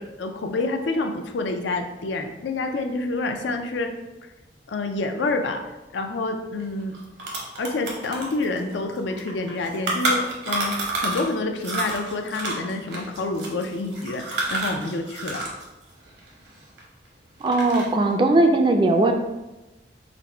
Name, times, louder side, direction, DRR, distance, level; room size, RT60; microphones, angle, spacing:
voice 1, 0.0-3.9 4.7-5.6 5.9-7.0 7.6-15.4, left 2 dB, 85° left, 5 dB, 0.4 m, -28 dB
sound 1, 6.6-6.7 6.9-11.3 11.6-15.6 15.9-17.1 17.4-18.0, right 2 dB, 75° right, 0.9 m, -29 dB
voice 2, 17.4-19.1, right 2 dB, 25° right, 5 dB, 0.3 m, -19 dB
4.0 x 2.1 x 4.3 m, 1.0 s
head